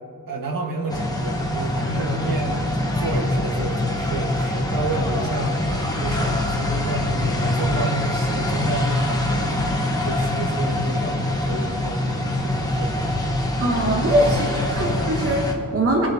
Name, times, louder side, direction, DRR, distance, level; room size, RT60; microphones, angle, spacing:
voice 1, 0.3-5.6 5.9-9.8 10.0-13.0 13.6-14.7, right 2 dB, 65° right, 1 dB, 1.3 m, -30 dB
sound 1, 0.9-15.5, left 1 dB, 10° left, 1.0 m, -24 dB
voice 2, 13.6-16.1, right 1 dB, 40° right, 1 dB, 1.0 m, -22 dB
23.0 x 8.4 x 2.7 m, 3.0 s
wide cardioid pair, 165°, 37 cm